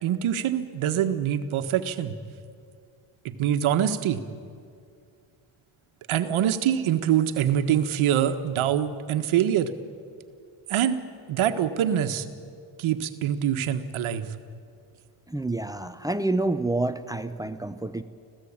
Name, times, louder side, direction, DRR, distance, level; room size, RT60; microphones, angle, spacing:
voice 1, 0.0-2.2 3.2-4.2 6.1-9.7 10.7-11.0 11.3-12.3 12.8-14.2, right 10 dB, 75° right, 8 dB, 1.5 m, -24 dB
voice 2, 15.3-18.0, right 2 dB, 5° right, 10 dB, 0.8 m, -28 dB
26.5 x 16.0 x 8.8 m, 2.3 s
cardioid pair, 105°, 49 cm